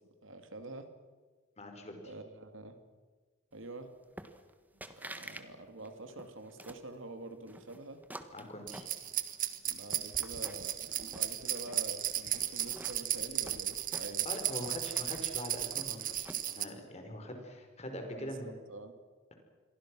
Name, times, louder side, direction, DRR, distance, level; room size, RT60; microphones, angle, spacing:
voice 1, 0.2-0.9 1.9-2.8 3.5-3.9 5.0-8.0 9.6-14.3 18.2-19.0, right 2 dB, 85° right, 8 dB, 2.6 m, -47 dB
voice 2, 1.6-2.1 8.3-8.9 14.2-18.5, left 1 dB, 35° left, 4 dB, 4.8 m, -43 dB
sound 1, 4.2-4.5 4.8-5.5 5.8-6.9 7.5-9.3 9.7-10.8 11.1-11.9 12.3-14.4 14.7-16.6, right 1 dB, 10° right, 1.5 m, -49 dB
sound 2, 8.7-16.6, right 12 dB, 45° right, 1.5 m, -35 dB
28.5 x 23.0 x 6.3 m, 1.5 s
head